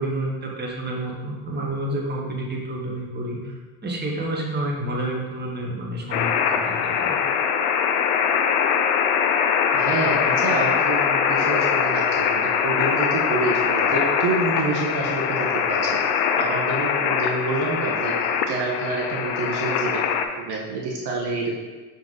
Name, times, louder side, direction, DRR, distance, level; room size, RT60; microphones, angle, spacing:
voice 1, 0.0-3.5 3.8-7.2, right 1 dB, 20° right, -2 dB, 1.5 m, -29 dB
sound 1, 6.1-20.2, left 7 dB, 70° left, 0.8 m, -22 dB
voice 2, 9.7-16.0 16.3-20.0 20.4-21.5, right 3 dB, 55° right, -1 dB, 1.3 m, -27 dB
6.5 x 4.1 x 4.0 m, 1.3 s
supercardioid pair, 80°, 47 cm